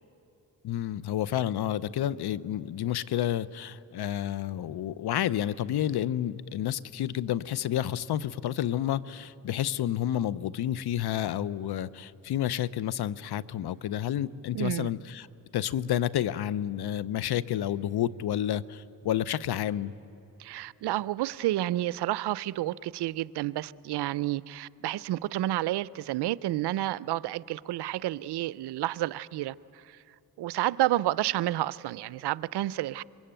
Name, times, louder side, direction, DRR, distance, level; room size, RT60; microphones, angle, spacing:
voice 1, 0.6-15.3 15.5-19.9, left 11 dB, 75° left, 0.7 m, -30 dB
voice 2, 14.5-14.9 20.4-30.0 30.4-33.0, right 15 dB, 85° right, 0.5 m, -30 dB
24.5 x 22.0 x 8.9 m
cardioid pair, 65°, 39 cm